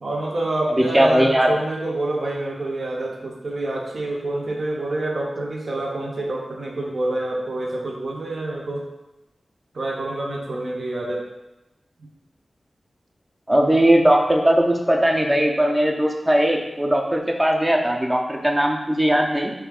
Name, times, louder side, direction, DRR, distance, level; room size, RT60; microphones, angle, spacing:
voice 1, 0.0-8.8 9.7-11.3 12.0-12.1, right 2 dB, 65° right, -1 dB, 0.6 m, -27 dB
voice 2, 0.8-1.5 13.5-19.5, right 1 dB, 15° right, 1 dB, 0.4 m, -19 dB
2.7 x 2.4 x 3.5 m, 0.98 s
wide cardioid pair, 85°, 0 cm